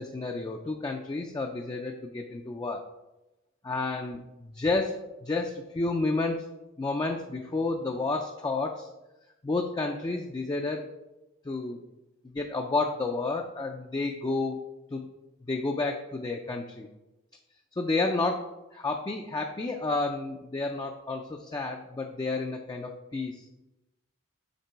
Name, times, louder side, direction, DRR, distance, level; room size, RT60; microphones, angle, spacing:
voice 1, 0.0-2.8 3.6-6.4 6.8-8.9 9.4-10.9 11.5-11.8 12.3-14.6 14.9-15.1 15.5-16.9 17.8-23.4, left 3 dB, 20° left, 3 dB, 0.4 m, -31 dB
6.6 x 3.7 x 4.5 m, 1.0 s
head